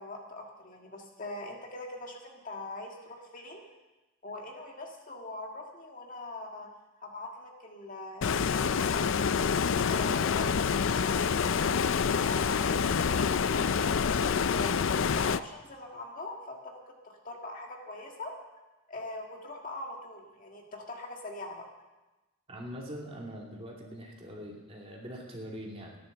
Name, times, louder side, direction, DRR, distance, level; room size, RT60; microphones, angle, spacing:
voice 1, 0.0-3.7 4.2-6.7 7.0-9.5 9.9-11.7 12.2-14.8 15.1-18.3 18.9-21.7, left 2 dB, 40° left, 1 dB, 1.8 m, -42 dB
Stream, 8.2-15.4, left 6 dB, 65° left, 0.4 m, -27 dB
voice 2, 22.5-26.0, equal, 25° right, -2 dB, 2.6 m, -42 dB
14.5 x 10.5 x 6.8 m, 1.1 s
head